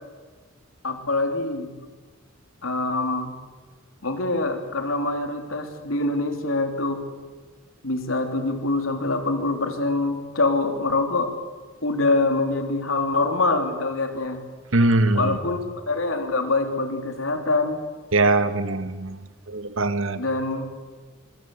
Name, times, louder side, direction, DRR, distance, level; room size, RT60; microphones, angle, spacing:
voice 1, 0.8-1.7 2.6-3.3 4.0-7.0 7.8-11.3 11.8-14.4 15.1-17.8 20.2-20.7, left 2 dB, 80° left, 5 dB, 3.6 m, -24 dB
voice 2, 14.7-15.4 18.1-19.2 19.5-20.2, right 2 dB, 75° right, 11 dB, 1.5 m, -21 dB
26.5 x 22.0 x 8.0 m, 1.4 s
head